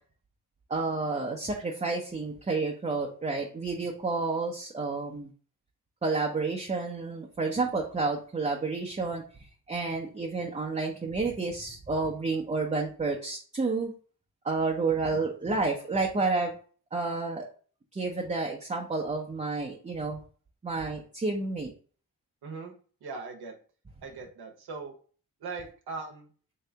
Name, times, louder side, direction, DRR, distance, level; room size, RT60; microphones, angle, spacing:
voice 1, 0.7-5.3 6.0-9.2 9.7-13.9 14.4-16.5 16.9-17.5 17.9-20.2 20.6-21.7, right 3 dB, 20° right, -1 dB, 0.6 m, -30 dB
voice 2, 22.4-22.7 23.0-23.5 24.0-24.9 25.4-26.3, right 4 dB, 75° right, 2 dB, 0.8 m, -39 dB
3.2 x 2.8 x 3.3 m, 0.42 s
cardioid pair, 55°, 38 cm